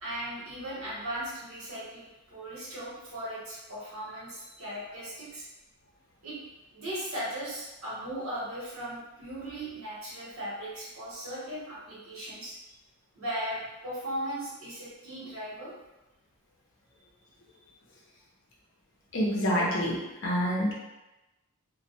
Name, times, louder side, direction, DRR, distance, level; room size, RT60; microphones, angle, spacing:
voice 1, 0.0-5.4 6.2-6.4 6.7-12.5 13.1-15.7, right 1 dB, 70° right, -8 dB, 1.0 m, -37 dB
voice 2, 19.1-20.7, equal, 55° left, -4 dB, 0.6 m, -27 dB
2.1 x 2.1 x 2.7 m, 1.0 s
head